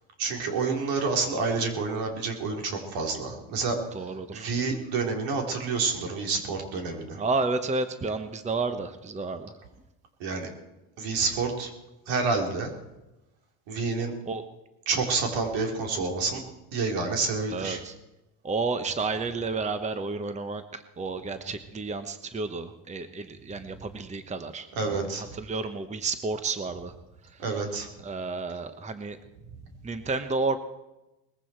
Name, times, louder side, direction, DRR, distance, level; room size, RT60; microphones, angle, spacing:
voice 1, 0.2-3.8 4.3-7.2 10.2-10.5 11.0-11.7 12.1-12.7 13.7-14.1 14.9-16.4 16.7-17.8 24.7-25.3 27.4-27.9, right 4 dB, 70° right, 2 dB, 4.0 m, -28 dB
voice 2, 3.9-4.6 7.1-9.5 14.3-14.4 17.5-17.9 18.4-24.7 24.9-25.0 25.3-26.9 28.0-29.2 29.8-30.6, right 3 dB, 15° right, 10 dB, 1.0 m, -31 dB
20.5 x 15.5 x 4.5 m, 0.99 s
supercardioid pair, 110°, 46 cm